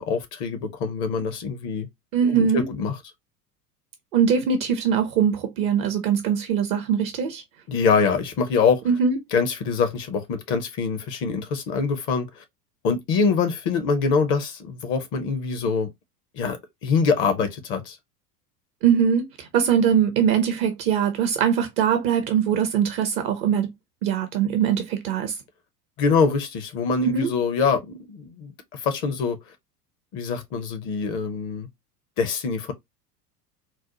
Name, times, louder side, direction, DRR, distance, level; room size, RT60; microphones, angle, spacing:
voice 1, 0.0-1.9 2.2-3.0 7.7-8.8 9.3-12.4 12.8-15.9 16.3-18.0 26.0-29.4 30.1-31.7 32.2-32.7, left 5 dB, 30° left, 0.5 m, -24 dB
voice 2, 2.1-2.6 4.1-7.4 8.9-9.2 18.8-23.7 24.0-25.3 27.1-27.3, right 7 dB, 25° right, 0.4 m, -22 dB
3.9 x 2.0 x 2.7 m
figure-of-eight pair, 85°, 48 cm